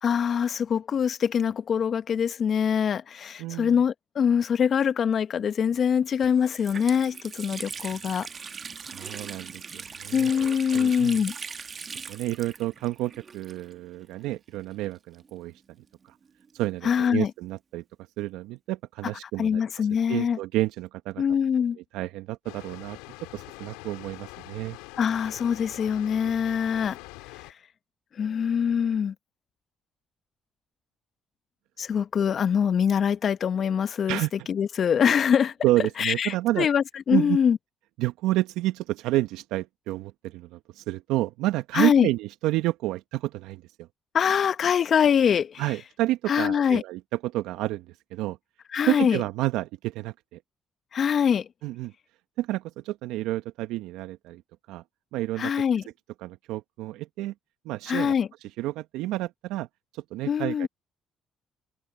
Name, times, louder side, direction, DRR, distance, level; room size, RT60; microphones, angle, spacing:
voice 1, 0.0-8.3 10.1-11.3 16.8-17.3 19.4-20.4 21.2-21.8 25.0-27.0 28.2-29.1 31.8-34.2 34.5-35.5 36.0-37.6 41.7-42.1 44.1-45.6 46.3-46.8 48.7-49.2 50.9-51.5 55.4-55.8 57.9-58.3 60.3-60.7, left 7 dB, 55° left, 1.4 m, -24 dB
voice 2, 3.4-3.8 8.9-11.2 12.1-15.5 16.0-16.2 16.5-17.8 18.2-21.2 21.9-23.0 23.3-24.8 34.1-34.3 35.6-36.7 37.1-37.4 38.0-43.9 45.6-48.4 48.9-50.4 51.6-51.9 52.4-54.4 54.7-54.8 55.1-55.5 56.2-57.3 57.6-58.1 58.6-59.7 59.9-60.7, right 16 dB, 75° right, 1.2 m, -30 dB
Water tap faucet, 5.7-5.8 6.2-14.0 14.2-14.3 15.1-16.7, right 6 dB, 45° right, 1.3 m, -40 dB
Water, 22.4-27.5, left 25 dB, 80° left, 3.6 m, -44 dB
hypercardioid pair, 50°, 0 cm